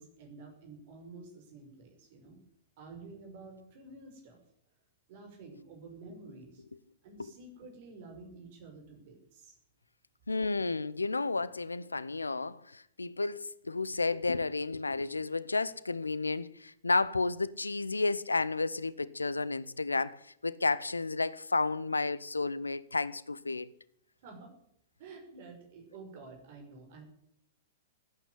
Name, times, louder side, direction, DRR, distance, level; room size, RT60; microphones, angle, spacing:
voice 1, 0.0-2.4 2.8-4.4 5.1-6.6 7.0-9.6 24.2-24.5 25.0-27.0, right 3 dB, 50° right, 5.7 m, -50 dB
voice 2, 10.3-23.7, left 3 dB, 85° left, 0.7 m, -32 dB
15.5 x 9.2 x 9.9 m
figure-of-eight pair, 105°, 0 cm